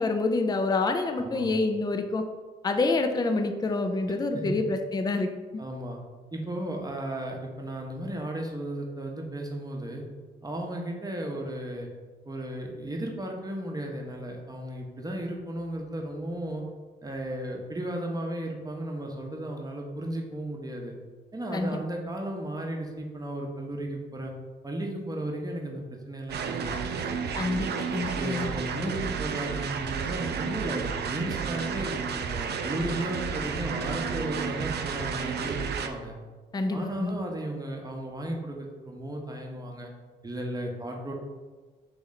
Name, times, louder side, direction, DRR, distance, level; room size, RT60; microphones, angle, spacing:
voice 1, 0.0-2.2 2.6-5.3 21.5-21.8 27.3-28.5 36.5-37.2, left 3 dB, 20° left, 6 dB, 0.4 m, -27 dB
voice 2, 1.2-1.5 4.3-4.5 5.6-6.0 6.3-10.0 10.4-11.9 12.2-16.6 17.0-20.9 21.3-24.3 24.6-27.4 28.1-36.1 36.7-39.9 40.2-41.1, right 1 dB, 20° right, 0 dB, 0.8 m, -35 dB
sound 1, 26.3-35.9, right 6 dB, 55° right, 0.4 m, -32 dB
3.1 x 3.1 x 3.8 m, 1.4 s
supercardioid pair, 50°, 20 cm